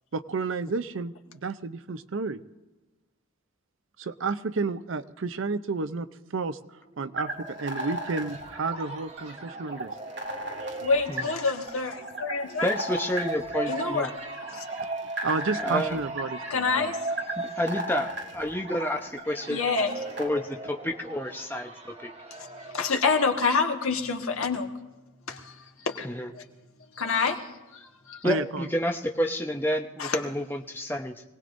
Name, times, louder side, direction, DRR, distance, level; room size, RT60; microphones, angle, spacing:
voice 1, 0.1-1.1 1.4-2.4 4.0-6.6 7.0-9.9 14.5-14.6 15.2-16.9 28.2-28.7, right 4 dB, 70° right, 13 dB, 0.6 m, -31 dB
sound 1, 6.9-23.9, right 2 dB, 30° right, 1.4 m, -39 dB
sound 2, 7.1-20.3, right 1 dB, 55° right, 1.8 m, -37 dB
voice 2, 10.8-12.7 13.7-14.1 14.5-14.6 16.5-17.2 19.5-19.9 22.4-24.7 25.3-26.1 26.4-26.5 27.0-28.2 30.0-30.2, left 4 dB, 90° left, 3 dB, 1.6 m, -27 dB
voice 3, 12.6-14.1 15.6-16.0 17.4-19.6 20.2-22.1 26.0-26.3 28.2-31.2, equal, 10° left, 3 dB, 0.8 m, -29 dB
25.0 x 18.0 x 2.6 m, 1.1 s
head